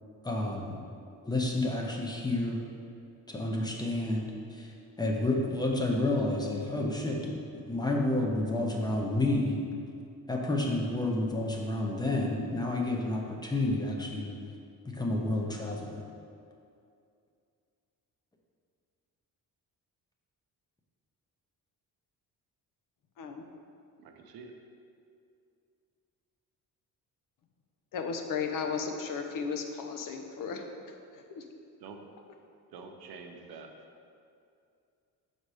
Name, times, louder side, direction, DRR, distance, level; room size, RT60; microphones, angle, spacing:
voice 1, 0.2-0.8 1.3-2.6 3.3-4.7 5.0-7.4 7.7-9.6 10.3-14.3 14.9-16.0, left 2 dB, 10° left, 0 dB, 0.5 m, -30 dB
voice 2, 24.0-24.5 31.8-32.0 32.7-33.7, right 4 dB, 80° right, 4 dB, 0.8 m, -47 dB
voice 3, 27.9-30.9 31.3-31.4, left 5 dB, 60° left, 4 dB, 0.6 m, -35 dB
6.5 x 4.1 x 4.8 m, 2.4 s
cardioid pair, 175°, 37 cm